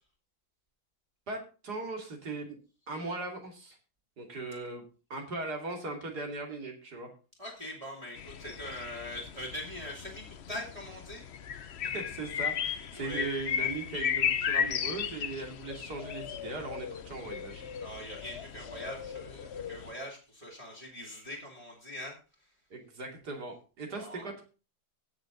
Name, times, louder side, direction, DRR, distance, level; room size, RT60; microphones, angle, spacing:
voice 1, 1.3-2.6 2.9-3.8 4.2-4.8 5.1-7.1 11.8-17.6 22.7-24.4, right 3 dB, 55° right, 2 dB, 3.2 m, -38 dB
voice 2, 7.4-11.2 12.9-13.3 17.8-22.2 24.0-24.2, left 1 dB, 15° right, -3 dB, 2.9 m, -42 dB
sound 1, 8.2-19.9, left 8 dB, 80° left, 0.5 m, -35 dB
17.0 x 6.4 x 3.9 m, 0.33 s
omnidirectional pair, 2.1 m